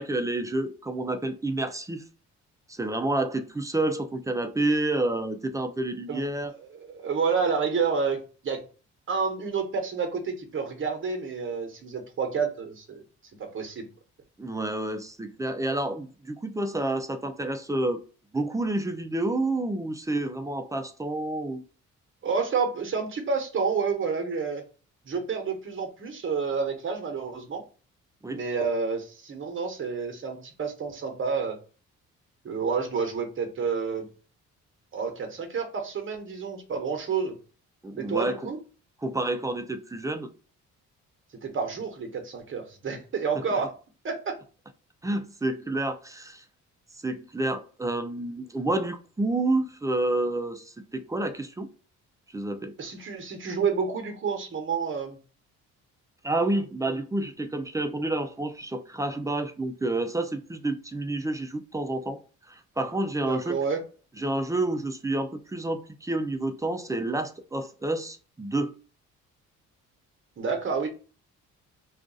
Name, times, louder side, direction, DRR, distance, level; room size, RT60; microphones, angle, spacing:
voice 1, 0.0-2.0 2.7-6.5 14.4-18.0 18.3-21.6 28.2-28.4 37.8-38.5 39.0-40.3 43.3-43.4 45.0-46.4 47.0-51.7 52.3-52.7 56.2-62.2 62.5-63.6 64.2-68.7, right 2 dB, 10° right, 0.4 m, -29 dB
voice 2, 6.1-8.6 9.1-13.0 13.4-13.9 22.2-24.6 25.1-27.6 28.3-31.6 32.4-34.0 34.9-37.3 38.0-38.6 41.4-43.7 44.0-44.3 52.8-55.2 63.2-63.8 70.4-70.9, right 5 dB, 40° right, 1.0 m, -29 dB
2.5 x 2.4 x 3.8 m
cardioid pair, 90°, 30 cm